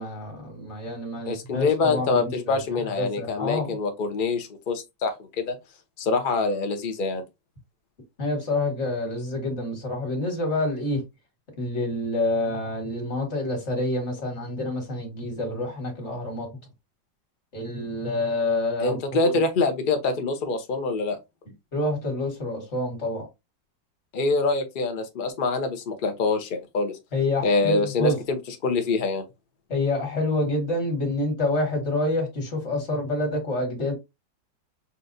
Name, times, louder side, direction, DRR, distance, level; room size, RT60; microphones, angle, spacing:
voice 1, 0.0-2.6 3.0-3.8 8.2-11.0 11.6-16.5 17.5-19.0 19.2-19.3 21.7-23.3 27.1-28.2 29.7-33.9, left 2 dB, 40° left, 1.8 m, -27 dB
voice 2, 1.3-5.6 6.0-7.2 18.8-21.2 24.1-26.9 27.4-29.2, left 3 dB, 55° left, 0.5 m, -25 dB
5.7 x 2.5 x 2.6 m
omnidirectional pair, 2.0 m